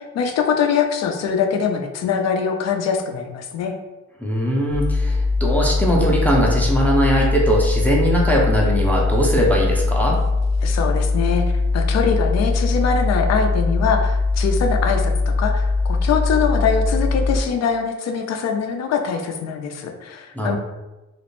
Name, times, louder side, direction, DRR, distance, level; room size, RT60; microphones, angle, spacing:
voice 1, 0.0-3.8 10.6-20.6, left 6 dB, 60° left, 4 dB, 0.5 m, -23 dB
voice 2, 4.2-10.2 20.3-20.6, equal, 5° left, -3 dB, 0.5 m, -20 dB
sound 1, 4.7-17.4, left 3 dB, 55° right, 0.5 m, -21 dB
2.4 x 2.0 x 3.0 m, 1.1 s
cardioid pair, 90°, 30 cm